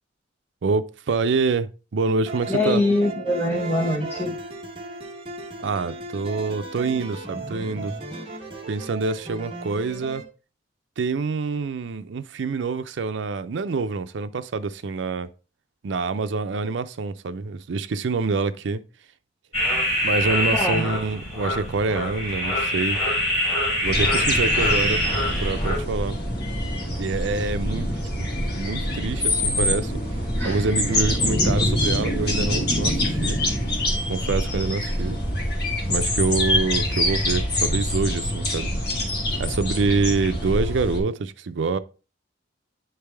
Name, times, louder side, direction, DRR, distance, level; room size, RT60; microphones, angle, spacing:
voice 1, 0.6-2.8 5.6-7.9 8.7-10.2 11.0-15.3 15.8-18.8 20.0-23.0 23.8-25.1 25.4-26.2 27.0-27.9 28.2-28.3 28.5-29.9 30.4-33.4 34.1-35.2 35.9-38.7 39.4-41.8, right 4 dB, 75° right, 0.5 m, -26 dB
sound 1, 2.3-10.3, right 2 dB, 30° right, 1.1 m, -36 dB
voice 2, 2.5-4.3 20.5-20.9 30.4-30.7, left 1 dB, 10° left, 0.8 m, -23 dB
sound 2, 19.5-25.8, equal, 30° left, 3.4 m, -24 dB
sound 3, 23.8-41.0, left 1 dB, 55° left, 1.7 m, -25 dB
9.5 x 3.4 x 3.4 m
head